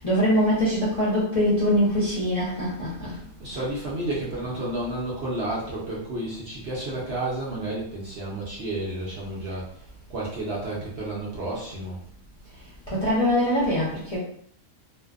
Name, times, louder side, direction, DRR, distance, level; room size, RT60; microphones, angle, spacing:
voice 1, 0.0-3.3 12.9-14.2, equal, 35° left, -9 dB, 0.6 m, -23 dB
voice 2, 3.0-12.0, right 1 dB, 55° right, -5 dB, 0.8 m, -31 dB
2.5 x 2.1 x 2.4 m, 0.63 s
omnidirectional pair, 1.4 m